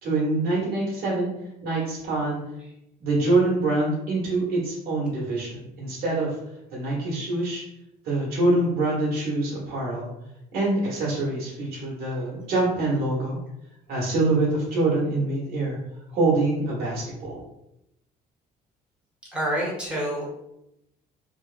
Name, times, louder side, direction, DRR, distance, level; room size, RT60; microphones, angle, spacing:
voice 1, 0.0-1.3 1.6-2.4 3.0-6.3 6.7-7.6 8.0-10.1 10.5-13.4 13.9-15.8 16.1-17.4, right 2 dB, 65° right, -5 dB, 1.0 m, -25 dB
voice 2, 19.3-20.3, right 1 dB, 5° right, -5 dB, 1.0 m, -27 dB
2.8 x 2.0 x 2.4 m, 0.83 s
cardioid pair, 110°, 17 cm